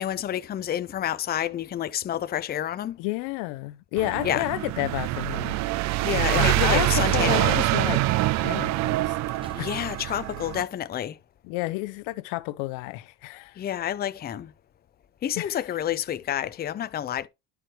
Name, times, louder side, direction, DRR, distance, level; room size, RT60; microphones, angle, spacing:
voice 1, 0.0-3.0 4.2-4.5 6.0-7.6 9.5-11.2 13.6-14.5 15.2-17.3, left 11 dB, 30° left, 0.5 m, -29 dB
voice 2, 3.0-5.6 6.3-8.0 8.4-9.1 9.6-9.7 11.4-13.6 15.4-15.8, left 20 dB, 85° left, 0.6 m, -31 dB
sound 1, 4.0-10.6, right 17 dB, 60° right, 0.5 m, -25 dB
sound 2, 9.4-10.9 11.7-11.9, right 3 dB, 15° right, 1.6 m, -52 dB
11.5 x 4.7 x 3.2 m
cardioid pair, 115°, 31 cm